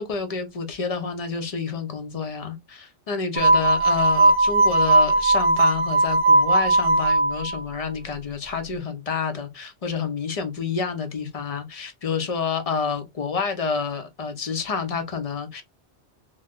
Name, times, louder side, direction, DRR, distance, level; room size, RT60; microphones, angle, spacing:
voice 1, 0.0-15.6, left 5 dB, 40° left, 0.6 m, -29 dB
sound 1, 3.4-7.6, right 2 dB, 80° right, 0.9 m, -18 dB
2.6 x 2.2 x 3.5 m
omnidirectional pair, 1.2 m